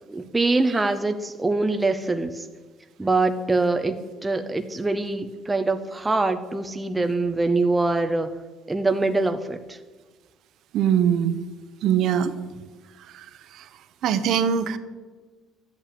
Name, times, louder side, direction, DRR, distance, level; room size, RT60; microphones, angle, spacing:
voice 1, 0.1-2.5 3.0-8.3 8.7-9.8, right 3 dB, 10° right, 7 dB, 0.5 m, -24 dB
voice 2, 10.7-11.4 11.8-12.3 13.1-13.3 13.5-13.7 14.0-14.8, right 8 dB, 55° right, 12 dB, 0.9 m, -22 dB
12.0 x 8.4 x 8.6 m, 1.3 s
cardioid pair, 170°, 0 cm